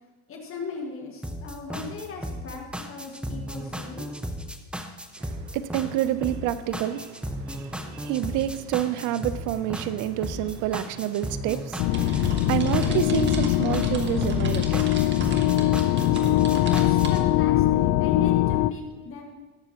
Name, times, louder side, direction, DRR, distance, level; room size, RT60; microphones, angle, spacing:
voice 1, 0.3-4.1 16.6-19.3, left 4 dB, 40° left, 1.9 m, -37 dB
sound 1, 1.2-17.2, equal, 5° right, 0.8 m, -35 dB
voice 2, 5.2-15.4, right 12 dB, 65° right, 0.7 m, -29 dB
sound 2, 10.9-17.1, right 2 dB, 35° right, 1.7 m, -36 dB
sound 3, 11.8-18.7, left 14 dB, 60° left, 0.5 m, -22 dB
19.5 x 6.9 x 3.0 m
supercardioid pair, 110°, 32 cm